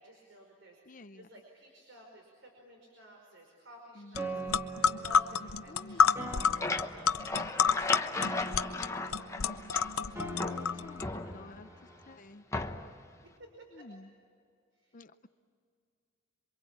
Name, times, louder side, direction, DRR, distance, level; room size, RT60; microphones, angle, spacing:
voice 1, 0.0-8.0 8.7-9.4 11.2-11.4 13.2-13.9 14.7-15.0, equal, 60° right, 1 dB, 5.0 m, -55 dB
voice 2, 0.9-1.3 4.0-4.6 5.7-6.5 10.3-11.7 12.1-12.4 13.7-14.1 14.9-15.3, left 2 dB, 40° left, 10 dB, 0.7 m, -51 dB
sound 1, 4.2-4.3 4.5-11.0, left 6 dB, 85° left, 0.7 m, -29 dB
Piano, 4.2-12.1, right 1 dB, 15° right, 2.0 m, -43 dB
sound 2, 6.1-10.1 10.4-11.7 12.5-13.0, left 3 dB, 15° left, 1.0 m, -36 dB
27.5 x 24.5 x 8.7 m, 2.3 s
head